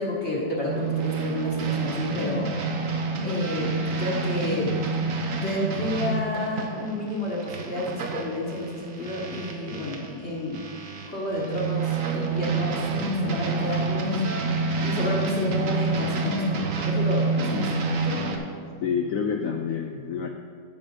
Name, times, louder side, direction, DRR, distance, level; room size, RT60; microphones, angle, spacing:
voice 1, 0.0-2.5 3.2-4.8 5.4-10.6 11.1-12.8 13.2-14.2 14.8-16.5 16.8-17.7 18.0-18.1, left 1 dB, 40° left, -4 dB, 1.7 m, -30 dB
sound 1, 0.7-10.1 10.5-18.4, right 3 dB, 55° right, 1.1 m, -28 dB
voice 2, 18.8-20.3, left 6 dB, 80° left, 4 dB, 0.7 m, -28 dB
9.1 x 7.2 x 5.3 m, 2.2 s
omnidirectional pair, 2.0 m